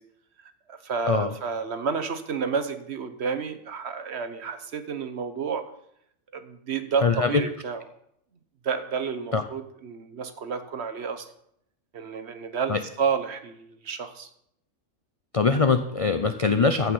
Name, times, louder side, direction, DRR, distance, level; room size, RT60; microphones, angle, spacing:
voice 1, 0.4-5.6 6.3-7.8 8.6-11.3 11.9-14.3, right 6 dB, 55° right, 9 dB, 1.1 m, -30 dB
voice 2, 15.3-16.9, left 4 dB, 50° left, 8 dB, 0.4 m, -22 dB
15.0 x 6.0 x 5.5 m, 0.74 s
omnidirectional pair, 1.4 m